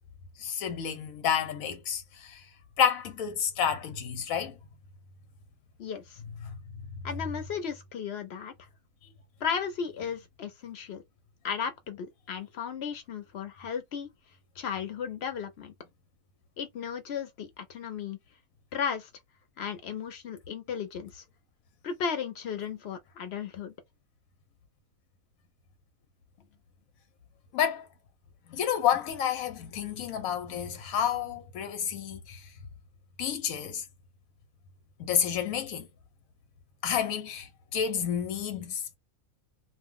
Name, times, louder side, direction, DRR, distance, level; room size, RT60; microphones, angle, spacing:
voice 1, 0.4-2.4 2.8-4.6 6.4-6.6 27.5-27.9 28.5-32.4 33.2-33.8 35.0-35.9 36.8-39.0, left 8 dB, 85° left, 1.1 m, -30 dB
voice 2, 5.8-6.2 7.0-8.5 9.4-11.0 11.4-14.1 14.6-15.7 16.6-18.2 18.7-19.1 19.6-21.2 21.8-23.7, left 7 dB, 60° left, 0.8 m, -35 dB
2.4 x 2.1 x 3.6 m
omnidirectional pair, 1.4 m